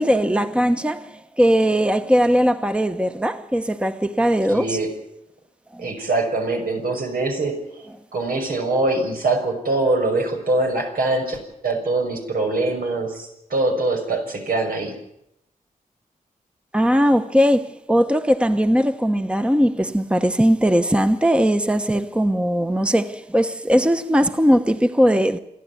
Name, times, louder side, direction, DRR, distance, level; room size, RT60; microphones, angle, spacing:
voice 1, 0.0-4.8 5.7-5.9 16.7-25.4, equal, 5° right, 1.0 m, -19 dB
voice 2, 4.5-4.9 5.8-7.6 8.1-14.9, right 2 dB, 85° right, 6.0 m, -23 dB
28.5 x 11.0 x 9.5 m
wide cardioid pair, 85°, 15 cm